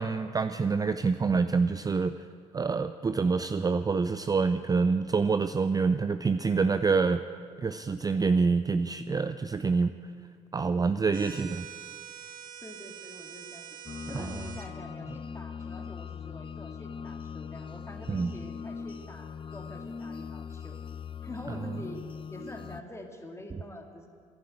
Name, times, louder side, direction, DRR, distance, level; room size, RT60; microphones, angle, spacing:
voice 1, 0.0-2.1 2.5-7.2 7.6-9.9 10.5-11.7 14.1-14.3 18.1-18.3, right 4 dB, 20° right, 10 dB, 0.4 m, -26 dB
sound 1, 11.1-14.7, right 9 dB, 55° right, 1.2 m, -45 dB
voice 2, 12.6-13.8 14.1-20.8 21.2-24.1, left 1 dB, 15° left, 3 dB, 2.1 m, -46 dB
sound 2, 13.9-22.8, left 6 dB, 30° left, 0.6 m, -40 dB
11.5 x 9.7 x 8.9 m, 2.1 s
hypercardioid pair, 50°, 17 cm